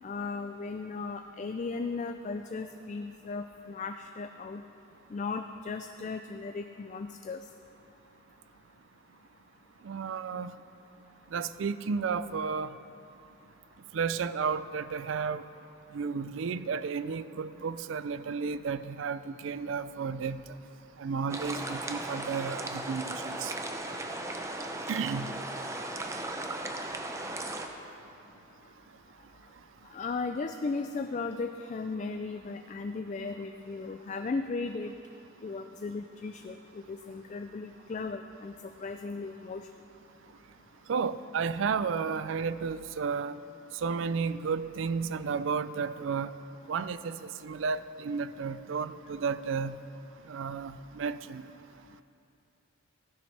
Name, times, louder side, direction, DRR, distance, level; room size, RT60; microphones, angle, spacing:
voice 1, 0.0-4.6 5.1-7.4 29.9-34.9 35.4-38.5 38.8-39.6, left 4 dB, 35° left, 6 dB, 0.3 m, -36 dB
voice 2, 9.8-10.5 11.3-12.7 13.9-15.5 15.9-20.4 21.0-23.5 24.9-25.3 40.9-43.4 43.7-46.3 46.7-49.8 50.3-51.4, right 5 dB, 70° right, 14 dB, 0.4 m, -32 dB
sound 1, 21.3-27.7, right 2 dB, 15° right, 0.5 m, -36 dB
15.5 x 10.5 x 3.3 m, 2.8 s
head